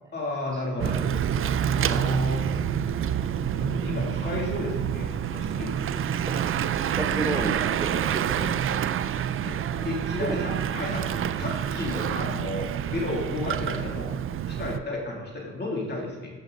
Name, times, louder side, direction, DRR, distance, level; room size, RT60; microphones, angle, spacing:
voice 1, 0.1-1.2 1.7-2.5 3.6-6.1 8.3-8.6 9.4-14.1 14.5-16.3, left 2 dB, 35° left, -2 dB, 2.7 m, -33 dB
Bicycle / Mechanisms, 0.8-14.8, right 9 dB, 45° right, 0.4 m, -27 dB
voice 2, 7.0-8.7 10.2-10.4 11.9-12.1, right 2 dB, 10° right, 0 dB, 1.0 m, -32 dB
11.5 x 6.4 x 3.9 m, 1.5 s
cardioid pair, 90°, 30 cm